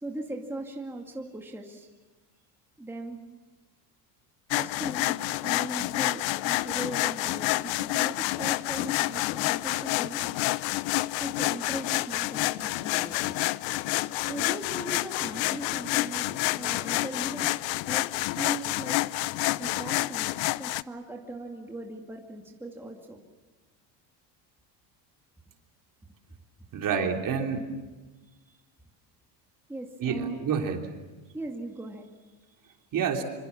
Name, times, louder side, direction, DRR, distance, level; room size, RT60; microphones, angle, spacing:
voice 1, 0.0-1.9 2.8-3.2 4.5-10.2 11.2-13.4 14.2-16.3 16.6-18.1 18.4-19.0 19.6-20.3 20.6-23.2 26.9-27.1 28.5-28.6 29.7-30.4 31.3-32.7, right 2 dB, 5° right, 1 dB, 2.2 m, -39 dB
sound 1, 4.5-20.8, left 20 dB, 65° left, 0.8 m, -28 dB
voice 2, 26.7-27.7 30.0-30.9 32.9-33.2, right 6 dB, 40° right, 3 dB, 3.4 m, -28 dB
26.0 x 26.0 x 7.3 m, 1.2 s
cardioid pair, 130°, 48 cm